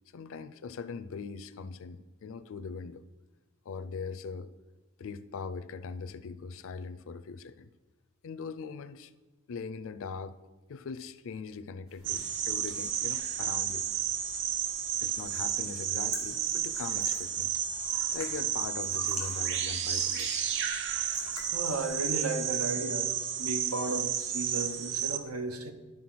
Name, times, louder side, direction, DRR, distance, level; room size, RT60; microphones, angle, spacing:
voice 1, 0.1-3.0 3.7-4.5 5.0-7.7 8.2-9.1 9.5-10.4 10.7-13.9 15.0-17.6 18.1-20.3, left 5 dB, 65° left, 14 dB, 0.4 m, -41 dB
sound 1, 11.9-22.3, right 2 dB, 75° right, 2.2 m, -45 dB
sound 2, 12.0-25.2, right 9 dB, 55° right, 0.6 m, -32 dB
voice 2, 21.5-23.1 23.4-25.7, right 3 dB, 90° right, 7 dB, 1.0 m, -34 dB
11.0 x 4.3 x 6.1 m, 1.2 s
head